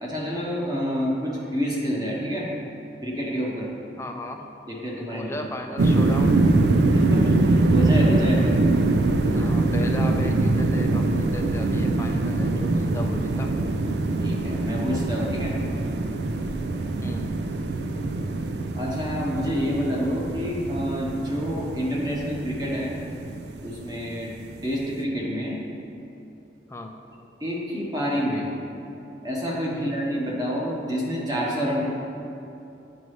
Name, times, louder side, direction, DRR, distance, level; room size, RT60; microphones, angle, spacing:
voice 1, 0.0-2.5 3.0-3.7 4.7-5.5 6.9-8.6 14.2-15.5 18.7-22.9 23.6-24.3 24.6-25.6 27.4-28.5 29.2-31.8, equal, 20° right, -4 dB, 1.1 m, -28 dB
voice 2, 4.0-4.5 5.1-6.4 9.3-13.6 17.0-17.3 26.7-27.0 29.7-30.0, left 1 dB, 15° left, 3 dB, 0.4 m, -36 dB
sound 1, 5.8-24.6, right 2 dB, 70° right, 0.4 m, -23 dB
8.2 x 5.3 x 3.2 m, 2.9 s
head